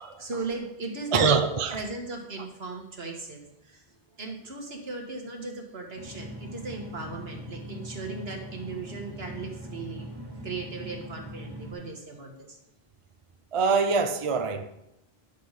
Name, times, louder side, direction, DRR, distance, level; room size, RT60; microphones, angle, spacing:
voice 1, 0.0-1.3 1.7-3.8 4.2-10.1 10.4-12.6, right 3 dB, 75° right, 1.8 m, -37 dB
voice 2, 1.1-1.8 13.5-14.7, right 5 dB, 40° right, 0.6 m, -24 dB
sound 1, 6.0-11.7, equal, 25° right, 1.5 m, -41 dB
10.5 x 6.6 x 4.1 m
omnidirectional pair, 1.0 m